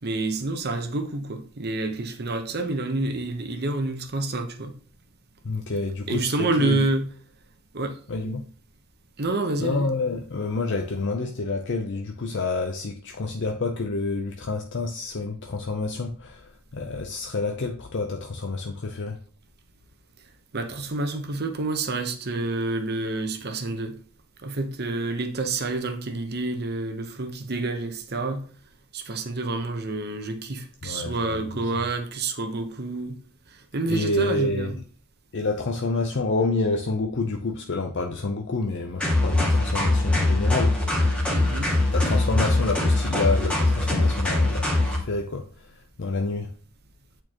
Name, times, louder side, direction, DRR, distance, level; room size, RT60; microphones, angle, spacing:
voice 1, 0.0-4.7 6.1-7.1 7.7-8.0 9.2-9.9 20.5-23.9 24.4-28.4 28.9-33.2 33.5-34.8 41.3-41.7, right 2 dB, 45° right, 0.9 m, -28 dB
voice 2, 5.4-6.8 8.1-8.4 9.6-19.2 30.8-31.4 33.9-34.7 35.3-40.8 41.9-45.7 46.0-46.5, left 3 dB, 55° left, 0.6 m, -28 dB
sound 1, 39.0-45.0, left 2 dB, 5° left, 1.5 m, -22 dB
8.5 x 4.5 x 2.9 m
head